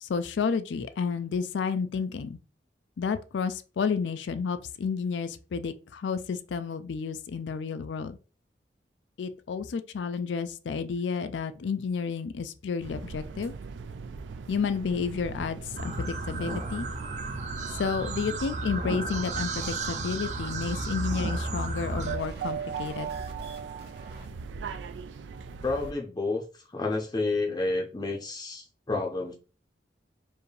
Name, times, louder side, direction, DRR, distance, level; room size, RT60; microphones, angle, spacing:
voice 1, 0.0-2.4 3.0-8.2 9.2-13.5 14.5-16.9 17.8-23.1, left 5 dB, 85° left, 0.4 m, -31 dB
sound 1, 12.8-25.9, right 5 dB, 90° right, 0.4 m, -39 dB
sound 2, 15.8-22.2, right 3 dB, 40° right, 0.6 m, -33 dB
sound 3, 20.6-24.3, right 3 dB, 65° right, 1.0 m, -51 dB
voice 2, 25.6-26.4 26.7-29.3, left 3 dB, 25° left, 0.6 m, -30 dB
4.5 x 2.6 x 3.2 m
head